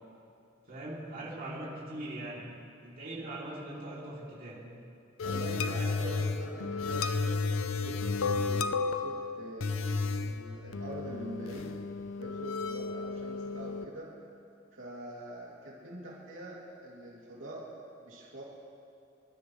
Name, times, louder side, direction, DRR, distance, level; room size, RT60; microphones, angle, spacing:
voice 1, 0.7-2.4 2.8-4.6, right 1 dB, 45° right, -6 dB, 3.0 m, -41 dB
sound 1, 5.2-13.8, left 4 dB, 90° left, 0.6 m, -33 dB
voice 2, 5.2-7.4 7.8-11.7 12.1-14.1 14.7-17.6 18.0-18.4, right 1 dB, 75° right, -5 dB, 2.8 m, -44 dB
25.5 x 12.5 x 3.2 m, 2.6 s
head